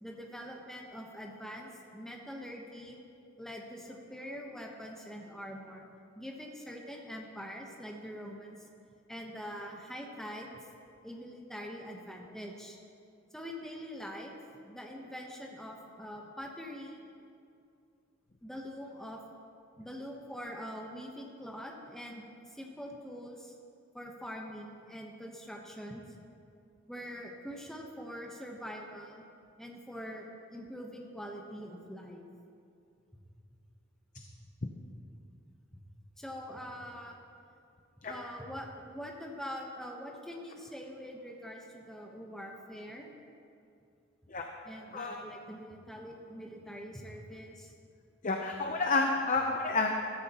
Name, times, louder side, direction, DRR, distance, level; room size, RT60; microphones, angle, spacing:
voice 1, 0.0-3.0 3.4-5.8 6.2-8.6 9.1-10.5 11.0-12.8 13.3-14.4 14.6-17.0 18.4-19.2 19.8-23.5 23.9-26.0 26.9-29.2 29.6-30.3 30.5-32.2 36.2-37.1 38.1-43.1 44.6-47.7, equal, ahead, 0 dB, 1.0 m, -44 dB
voice 2, 48.2-49.9, left 3 dB, 40° left, 2 dB, 0.7 m, -29 dB
14.5 x 13.5 x 3.0 m, 2.5 s
head